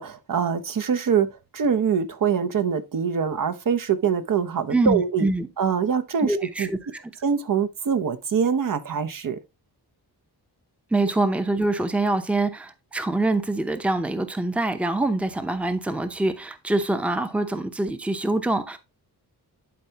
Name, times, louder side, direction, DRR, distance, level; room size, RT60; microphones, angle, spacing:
voice 1, 0.0-5.3 5.6-6.7 7.2-9.4, right 6 dB, 55° right, 0.8 m, -24 dB
voice 2, 4.7-5.5 6.2-7.0 10.9-18.8, right 2 dB, 5° right, 0.7 m, -25 dB
11.5 x 4.6 x 2.8 m
wide cardioid pair, 120°, 40 cm